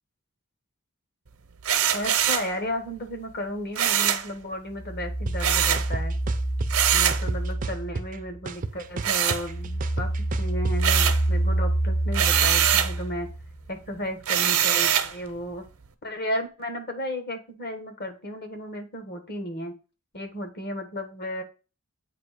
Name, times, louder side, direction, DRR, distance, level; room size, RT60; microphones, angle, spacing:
sound 1, 1.6-2.5 3.8-4.3 5.4-5.9 6.7-7.2 9.0-9.9 10.3-11.3 12.1-13.0 14.3-15.1, right 9 dB, 80° right, 0.8 m, -23 dB
voice 1, 1.9-6.1 6.9-10.1 10.4-13.3 13.7-15.6 16.0-19.7 20.1-21.4, equal, 45° left, 5 dB, 1.3 m, -34 dB
sound 2, 4.7-8.6 9.0-13.6, right 1 dB, 20° left, 0.6 m, -27 dB
sound 3, 5.3-5.4 5.8-6.7 7.1-8.2 8.5-10.7, right 3 dB, 40° right, 0.4 m, -33 dB
8.2 x 2.8 x 4.9 m, 0.33 s
head